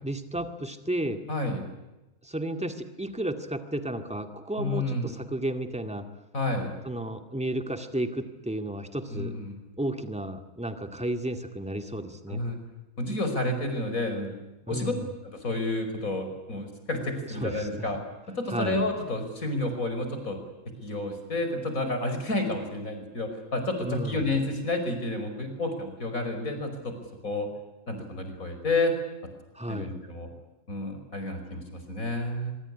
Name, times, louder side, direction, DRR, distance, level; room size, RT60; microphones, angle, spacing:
voice 1, 0.0-1.2 2.2-6.1 6.8-9.3 9.8-12.4 14.7-15.0 17.4-17.9 18.5-18.8 23.8-24.3 29.5-29.9, right 1 dB, 5° right, 7 dB, 2.0 m, -33 dB
voice 2, 1.3-1.6 4.6-5.1 6.3-6.7 9.1-9.6 12.3-12.6 13.0-14.3 14.7-14.9 15.2-18.0 18.4-20.4 20.8-26.9 27.2-27.5 27.9-28.9 29.7-30.3 30.7-32.5, left 2 dB, 75° left, 6 dB, 5.6 m, -30 dB
24.5 x 23.5 x 10.0 m, 1.0 s
omnidirectional pair, 1.4 m